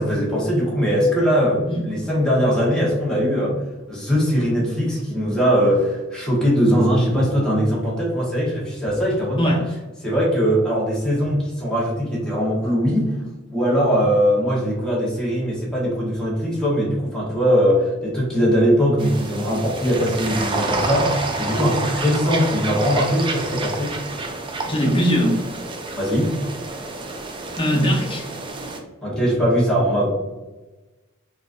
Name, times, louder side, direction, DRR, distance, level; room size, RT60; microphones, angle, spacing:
voice 1, 0.0-3.6 3.9-9.6 10.0-13.1 13.5-23.9 26.0-26.3 29.0-30.1, equal, 5° left, -6 dB, 1.0 m, -20 dB
sound 1, 19.0-28.8, right 3 dB, 25° right, 0.4 m, -29 dB
voice 2, 24.6-25.4 27.6-28.3, equal, 25° left, -1 dB, 0.8 m, -20 dB
3.8 x 2.4 x 2.5 m, 1.1 s
head